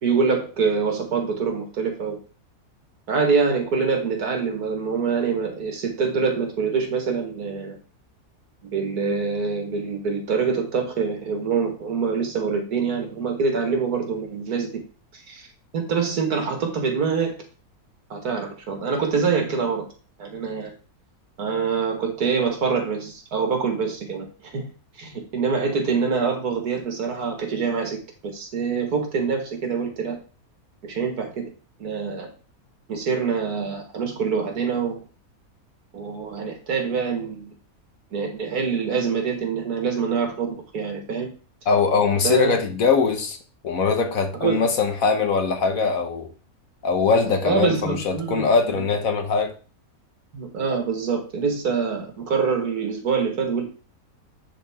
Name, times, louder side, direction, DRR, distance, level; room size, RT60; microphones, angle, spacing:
voice 1, 0.0-2.2 3.1-7.8 8.6-14.8 15.3-15.4 15.7-17.4 18.1-19.9 20.2-20.7 21.4-24.6 25.0-28.0 28.2-30.2 30.8-31.4 31.8-32.3 32.9-35.0 35.9-37.5 38.1-41.3 42.2-42.6 44.4-44.6 47.2-48.8 50.3-53.6, right 5 dB, 75° right, 2.1 m, -25 dB
voice 2, 41.7-43.4 43.6-46.3 46.8-49.5, left 5 dB, 65° left, 1.4 m, -21 dB
10.0 x 3.9 x 3.6 m
omnidirectional pair, 1.6 m